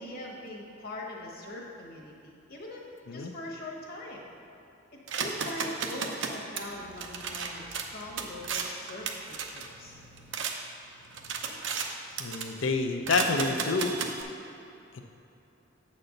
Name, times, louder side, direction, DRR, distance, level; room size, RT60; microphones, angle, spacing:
voice 1, 0.0-2.9 3.1-4.3 4.9-10.0, left 1 dB, 50° left, -1 dB, 1.3 m, -42 dB
sound 1, 5.1-10.5 11.0-11.9 12.2-12.6 13.0-14.2, right 5 dB, 65° right, 0.7 m, -35 dB
voice 2, 12.2-14.0 14.9-15.0, left 3 dB, 75° left, 5 dB, 0.5 m, -28 dB
7.8 x 4.3 x 6.4 m, 2.8 s
head